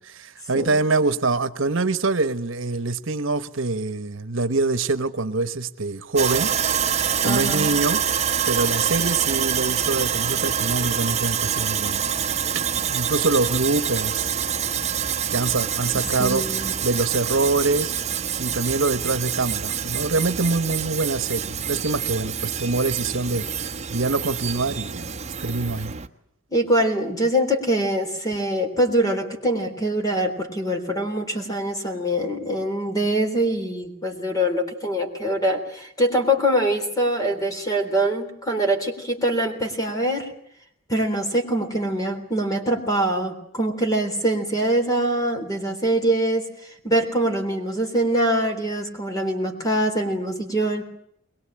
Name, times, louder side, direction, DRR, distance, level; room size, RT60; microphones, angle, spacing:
voice 1, 0.1-6.5 7.2-8.0 8.5-12.0 12.7-14.3 15.3-17.9 18.4-25.1 25.4-25.9, right 3 dB, 70° right, 1.2 m, -24 dB
Sawing, 6.2-26.1, right 8 dB, 35° right, 1.1 m, -26 dB
voice 2, 7.2-7.7 16.2-16.7 26.5-40.3 40.9-46.4 46.8-50.8, right 1 dB, 20° left, 3.8 m, -23 dB
22.5 x 22.0 x 8.9 m
head